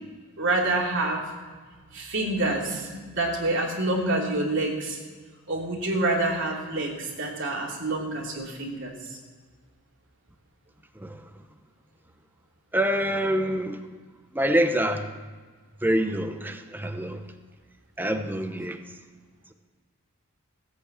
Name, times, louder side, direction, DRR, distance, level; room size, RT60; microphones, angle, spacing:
voice 1, 0.4-1.2 1.9-5.0 5.5-9.2, right 2 dB, 60° right, -1 dB, 3.0 m, -27 dB
voice 2, 12.7-13.8 14.3-15.1 15.8-17.2 18.0-18.8, equal, 10° right, 7 dB, 0.8 m, -26 dB
17.0 x 8.3 x 7.3 m, 1.5 s
head